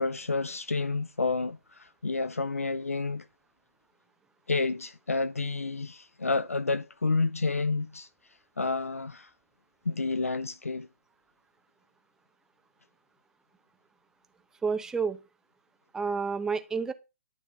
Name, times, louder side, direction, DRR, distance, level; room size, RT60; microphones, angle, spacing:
voice 1, 0.0-3.3 4.5-8.1 8.6-9.3 9.8-10.9, left 3 dB, 85° left, 0.6 m, -30 dB
voice 2, 14.6-15.2 15.9-16.9, right 5 dB, 5° right, 0.8 m, -29 dB
12.0 x 4.2 x 6.8 m
figure-of-eight pair, 125°, 7 cm